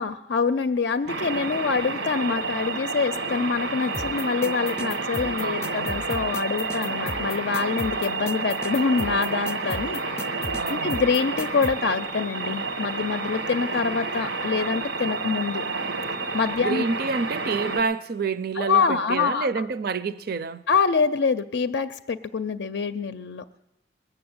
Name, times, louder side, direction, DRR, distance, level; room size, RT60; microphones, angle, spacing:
voice 1, 0.0-10.0 10.7-15.6 16.3-16.8 18.6-19.5 20.7-23.4, left 5 dB, 65° left, 0.5 m, -25 dB
sound 1, 1.1-17.8, right 3 dB, 90° right, 1.4 m, -30 dB
sound 2, 3.9-11.7, left 2 dB, 15° left, 0.5 m, -35 dB
voice 2, 5.4-5.9 10.5-11.0 16.6-20.6, right 4 dB, 55° right, 0.6 m, -28 dB
20.5 x 6.8 x 8.7 m
head